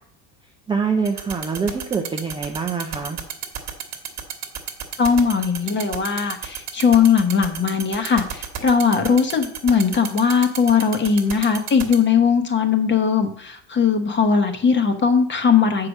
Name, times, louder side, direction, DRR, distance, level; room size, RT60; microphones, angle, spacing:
voice 1, 0.7-3.2, right 5 dB, 10° right, 1 dB, 0.4 m, -25 dB
sound 1, 1.1-12.0, right 9 dB, 35° right, 1.4 m, -30 dB
voice 2, 5.0-15.9, left 6 dB, 25° left, 6 dB, 1.0 m, -19 dB
7.5 x 4.8 x 6.4 m, 0.65 s
cardioid pair, 140°, 48 cm